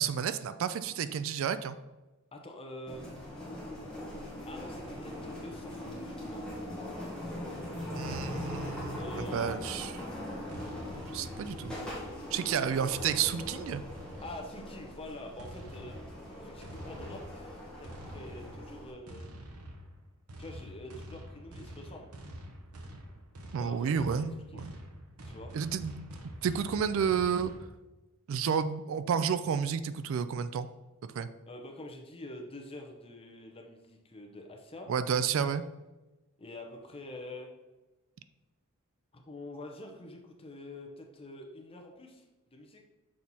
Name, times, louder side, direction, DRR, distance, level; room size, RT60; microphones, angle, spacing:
voice 1, 0.0-1.8 7.9-9.9 11.1-11.7 12.3-13.8 23.5-24.7 25.5-26.1 26.4-27.5 28.3-30.7 31.1-31.3 34.9-35.6, right 7 dB, 60° right, 13 dB, 0.3 m, -31 dB
voice 2, 2.3-3.1 4.5-5.1 5.4-6.4 9.0-9.6 14.2-15.9 16.4-19.3 20.4-22.1 23.5-24.7 25.2-25.5 31.5-34.9 36.4-37.5 39.1-42.2 42.5-42.8, left 1 dB, 25° left, 2 dB, 0.8 m, -46 dB
sound 1, 2.9-18.9, left 1 dB, 5° left, 1.4 m, -41 dB
sound 2, 8.0-9.8 10.5-12.2 12.9-14.6 15.4-27.6, equal, 80° right, 0.9 m, -47 dB
6.3 x 4.2 x 4.1 m, 1.1 s
head